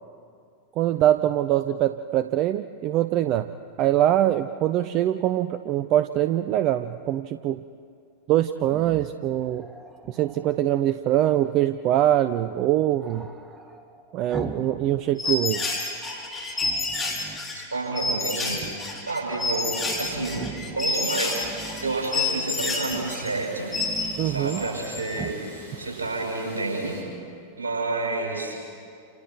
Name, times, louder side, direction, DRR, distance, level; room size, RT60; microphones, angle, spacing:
voice 1, 0.8-3.5 3.8-7.6 8.3-9.7 10.1-13.3 14.1-15.7 24.2-24.6, right 12 dB, 40° right, 12 dB, 0.6 m, -23 dB
Growling, 8.6-10.6 13.0-14.8 15.1-16.0 16.6-17.5 17.9-18.9 19.2-19.3 19.5-20.8 21.3-22.1 22.8-23.2 23.6-24.8 25.1-25.4, right 3 dB, 15° right, 2.0 m, -41 dB
sound 1, 15.2-24.1 24.5-25.3, left 3 dB, 10° left, 4.9 m, -29 dB
voice 2, 17.7-21.5 21.8-23.7 24.2-27.0 27.6-28.6, right 3 dB, 70° right, -1 dB, 7.1 m, -30 dB
sound 2, 20.8-27.0, right 1 dB, 85° left, 5.9 m, -44 dB
28.5 x 28.5 x 4.7 m, 2.4 s
figure-of-eight pair, 90°, 0 cm